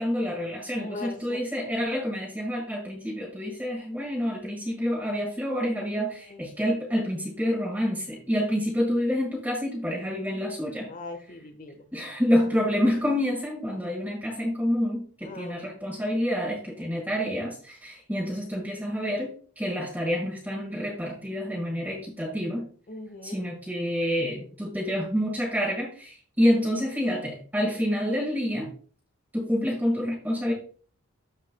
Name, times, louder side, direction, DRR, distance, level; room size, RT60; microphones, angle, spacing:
voice 1, 0.0-10.9 11.9-22.7 23.2-28.7 29.3-30.5, equal, 10° right, -4 dB, 1.7 m, -28 dB
voice 2, 0.8-1.4 5.9-6.4 10.9-11.8 15.2-15.7 22.9-23.4, left 2 dB, 35° left, 6 dB, 1.3 m, -40 dB
14.0 x 4.8 x 2.3 m, 0.43 s
head